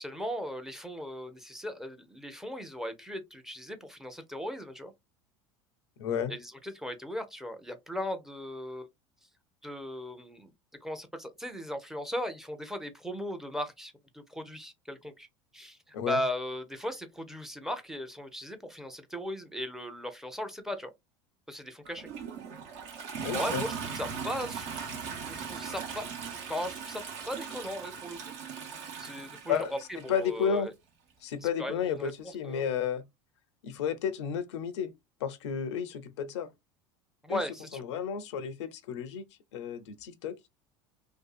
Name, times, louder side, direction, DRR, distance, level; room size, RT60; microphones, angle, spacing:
voice 1, 0.0-4.9 6.3-8.9 9.6-10.5 10.8-15.3 15.5-20.9 21.5-22.1 23.3-24.7 25.3-26.1 26.5-28.2 29.0-29.8 30.0-30.7 31.4-32.1 32.5-32.6 37.2-37.9, equal, 5° right, 0.5 m, -37 dB
voice 2, 6.0-6.3 15.9-16.2 23.2-23.6 29.5-29.7 30.1-30.7 31.2-33.0 33.6-34.9 35.2-36.5 37.3-37.4 37.7-39.2 39.5-40.5, left 7 dB, 80° left, 0.5 m, -32 dB
Toilet flush, 21.8-30.3 31.3-31.4, right 6 dB, 60° right, 0.9 m, -39 dB
2.6 x 2.3 x 2.3 m
hypercardioid pair, 90°, 15 cm